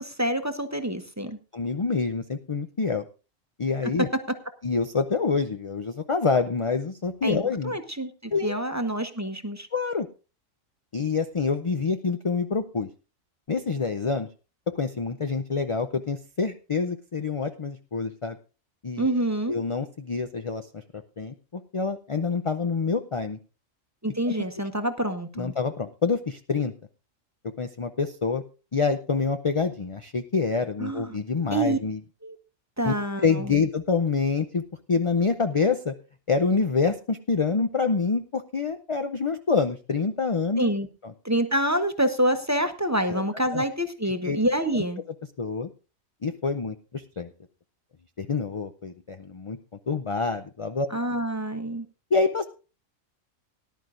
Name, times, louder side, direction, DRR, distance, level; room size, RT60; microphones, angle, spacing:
voice 1, 0.0-1.4 7.2-7.4 7.6-9.7 19.0-19.6 24.0-25.5 30.8-31.1 31.5-31.8 32.2-32.4 32.8-33.5 40.6-40.9 41.2-45.0 50.9-51.9, right 1 dB, 15° right, 7 dB, 0.9 m, -27 dB
voice 2, 1.5-3.0 3.6-4.1 4.6-7.8 8.3-8.6 9.7-10.1 10.9-12.9 13.5-14.3 14.8-18.4 18.8-19.1 19.5-23.4 25.4-26.7 27.6-28.4 28.7-32.0 32.8-32.9 33.2-34.6 34.9-35.9 36.3-40.7 41.0-41.1 43.1-43.3 43.5-43.6 44.2-44.4 44.7-44.8 45.4-45.7 46.2-47.3 48.2-49.6 49.9-50.9 52.1-52.4, left 4 dB, 45° left, 8 dB, 0.4 m, -26 dB
18.5 x 11.0 x 2.5 m, 0.32 s
omnidirectional pair, 1.4 m